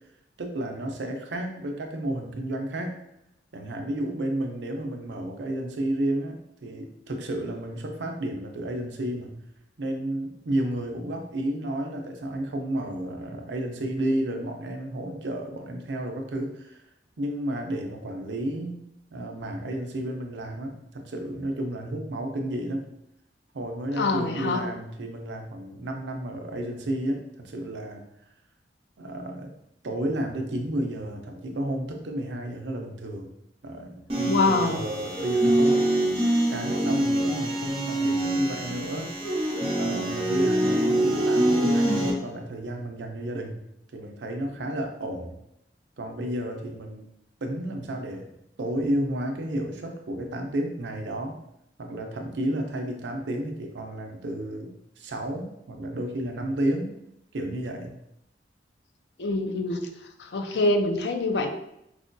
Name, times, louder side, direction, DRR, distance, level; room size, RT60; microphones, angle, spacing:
voice 1, 0.4-3.0 3.5-9.4 9.8-16.8 17.2-22.9 23.5-28.0 29.0-29.5 29.8-33.3 33.6-36.0 36.5-39.1 39.7-43.6 43.9-45.4 46.0-47.1 47.4-51.4 51.8-56.9 57.3-58.0, right 1 dB, 85° right, 3 dB, 0.6 m, -32 dB
voice 2, 24.0-24.6 34.2-34.8 59.2-59.9 60.2-61.5, left 2 dB, 70° left, 6 dB, 0.5 m, -25 dB
sound 1, 34.1-42.1, right 1 dB, 30° right, 1.0 m, -24 dB
4.8 x 2.2 x 2.6 m, 0.81 s
head